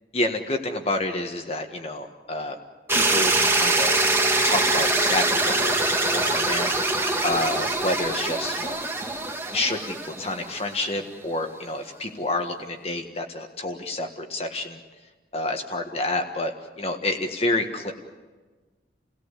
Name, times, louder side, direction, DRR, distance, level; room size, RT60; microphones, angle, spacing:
voice 1, 0.1-2.6 2.9-4.0 4.4-8.8 9.5-14.8 15.3-17.9, left 2 dB, 35° left, 4 dB, 1.5 m, -29 dB
sound 1, 2.9-10.9, right 2 dB, 15° right, 1.9 m, -23 dB
30.0 x 17.5 x 8.2 m, 1.3 s
head